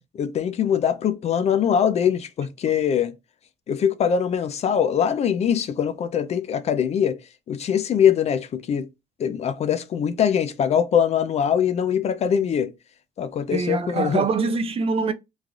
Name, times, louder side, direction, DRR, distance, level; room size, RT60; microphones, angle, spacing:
voice 1, 0.1-3.1 3.7-7.2 7.5-8.9 9.2-12.7 13.2-14.2, left 8 dB, 40° left, 0.4 m, -22 dB
voice 2, 13.5-15.1, right 4 dB, 35° right, 0.4 m, -24 dB
3.2 x 2.4 x 2.3 m
cardioid pair, 110°, 17 cm